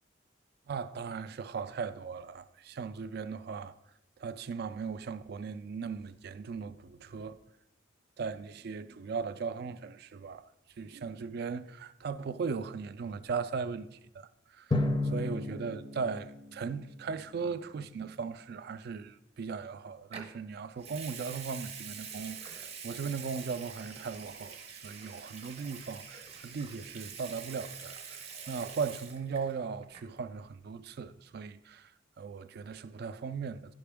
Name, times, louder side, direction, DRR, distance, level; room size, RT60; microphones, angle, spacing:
voice 1, 0.7-3.7 4.2-7.4 8.2-10.5 10.8-31.9 32.2-33.7, right 5 dB, 55° right, 0.3 m, -38 dB
Drum, 14.7-17.4, left 2 dB, 25° left, 0.5 m, -33 dB
Water tap faucet / Sink (filling or washing) / Liquid, 20.1-20.4 20.8-29.6 29.8-30.2, right 6 dB, 30° right, 0.7 m, -46 dB
11.0 x 5.0 x 3.5 m
head